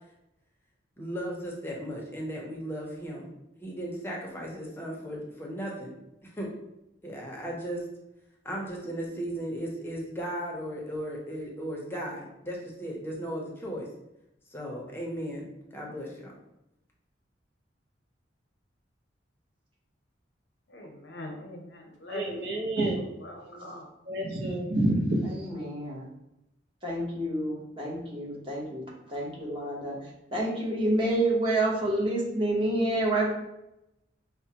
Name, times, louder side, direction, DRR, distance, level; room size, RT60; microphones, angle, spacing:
voice 1, 1.0-3.3 3.6-5.9 6.2-6.5 7.0-7.9 8.4-13.9 14.5-16.4, equal, 15° left, -2 dB, 0.6 m, -36 dB
voice 2, 20.7-22.7 23.2-23.9, left 1 dB, 75° left, 2 dB, 0.7 m, -42 dB
voice 3, 22.1-23.0 23.5-23.6 24.1-25.2, right 1 dB, 60° right, 0 dB, 0.8 m, -28 dB
voice 4, 25.2-26.1 26.8-33.3, right 1 dB, 30° right, -3 dB, 0.9 m, -29 dB
4.7 x 2.1 x 2.8 m, 0.87 s
head